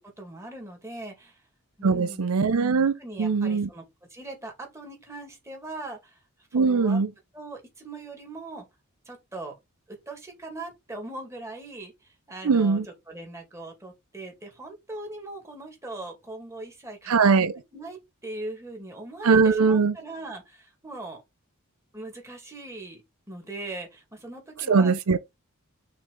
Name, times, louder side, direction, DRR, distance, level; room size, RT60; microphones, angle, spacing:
voice 1, 0.2-1.4 1.8-2.3 3.0-3.8 4.1-6.2 6.5-7.0 7.3-8.6 9.1-9.5 9.9-21.2 21.9-23.0 23.3-24.9, right 2 dB, 15° right, 2.3 m, -40 dB
voice 2, 1.8-2.9 3.2-3.7 6.5-7.1 12.4-12.8 17.1-17.5 19.2-19.9 24.7-25.2, right 5 dB, 85° right, 0.5 m, -21 dB
6.0 x 3.9 x 4.0 m
head